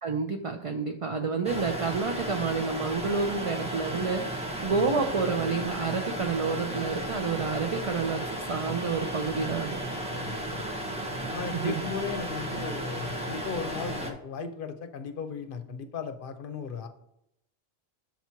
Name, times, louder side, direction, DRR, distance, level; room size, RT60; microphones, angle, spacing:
voice 1, 0.0-8.2 8.5-9.8 11.5-11.9, right 4 dB, 45° right, 4 dB, 0.4 m, -29 dB
sound 1, 1.4-14.1, right 1 dB, 5° right, 0.8 m, -34 dB
voice 2, 4.7-5.0 10.1-10.9 11.3-16.9, left 6 dB, 60° left, 8 dB, 0.8 m, -37 dB
7.2 x 3.0 x 5.7 m, 0.77 s
omnidirectional pair, 1.0 m